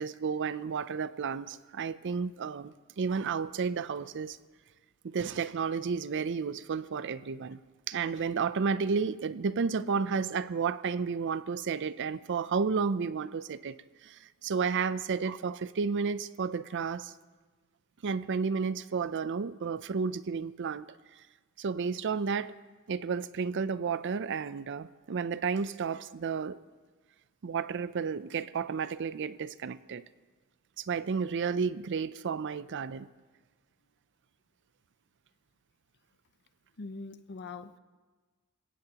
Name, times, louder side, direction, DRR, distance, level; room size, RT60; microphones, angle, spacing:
voice 1, 0.0-4.4 5.0-7.6 7.9-13.8 14.0-17.1 18.0-20.9 21.6-22.5 22.9-26.6 27.4-30.0 30.8-33.1, right 5 dB, 55° right, 0.5 m, -32 dB
voice 2, 36.8-37.8, left 3 dB, 50° left, 0.7 m, -42 dB
28.5 x 17.0 x 2.9 m
head